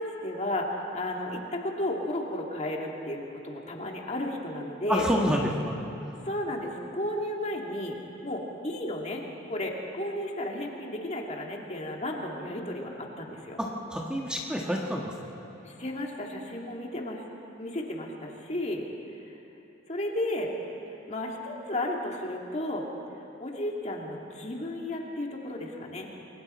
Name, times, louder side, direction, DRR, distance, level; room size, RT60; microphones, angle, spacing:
voice 1, 0.0-5.1 6.2-8.0 8.2-9.2 9.5-13.6 15.6-17.2 17.6-18.8 19.9-20.5 21.1-22.9 23.4-26.1, left 1 dB, 35° left, 0 dB, 2.2 m, -33 dB
voice 2, 4.9-5.8 13.6-15.1, equal, 5° right, -2 dB, 1.5 m, -28 dB
29.0 x 22.0 x 4.3 m, 3.0 s
head